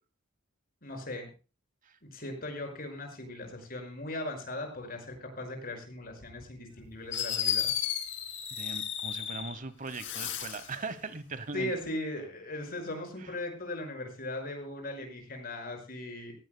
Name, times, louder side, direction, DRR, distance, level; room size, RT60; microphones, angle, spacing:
voice 1, 0.8-1.3 2.0-7.7 11.5-16.3, left 1 dB, 50° left, 4 dB, 5.5 m, -38 dB
Fireworks, 6.7-6.8 7.1-9.5 9.9-10.7, left 9 dB, 65° left, 3.1 m, -33 dB
voice 2, 8.5-11.7 13.2-13.3, right 3 dB, 45° right, 14 dB, 1.0 m, -40 dB
19.0 x 16.0 x 2.2 m, 0.33 s
head